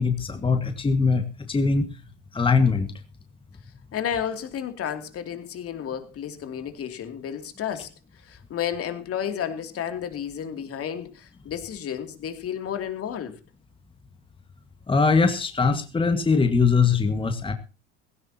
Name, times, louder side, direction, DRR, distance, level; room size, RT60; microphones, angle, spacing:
voice 1, 0.0-1.9 2.3-2.9 14.9-17.5, left 4 dB, 15° left, 7 dB, 1.7 m, -21 dB
voice 2, 3.9-7.9 8.2-13.4, left 9 dB, 40° left, 7 dB, 2.8 m, -32 dB
17.0 x 16.5 x 2.9 m, 0.31 s
hypercardioid pair, 80°, 35 cm